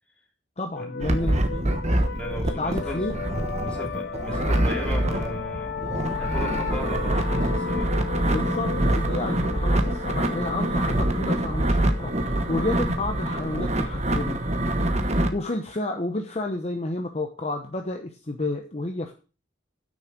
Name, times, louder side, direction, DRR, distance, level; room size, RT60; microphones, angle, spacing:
voice 1, 0.6-1.6 2.6-3.2 8.2-14.4 15.1-19.1, left 2 dB, 35° left, 4 dB, 0.9 m, -31 dB
sound 1, 0.8-16.1, left 6 dB, 60° left, 0.6 m, -36 dB
sound 2, 1.0-15.3, right 1 dB, 35° right, 1.2 m, -25 dB
voice 2, 2.1-3.0 3.6-5.9 6.2-7.9 9.2-9.4, equal, 5° left, -1 dB, 3.2 m, -37 dB
9.5 x 6.5 x 6.0 m, 0.34 s
head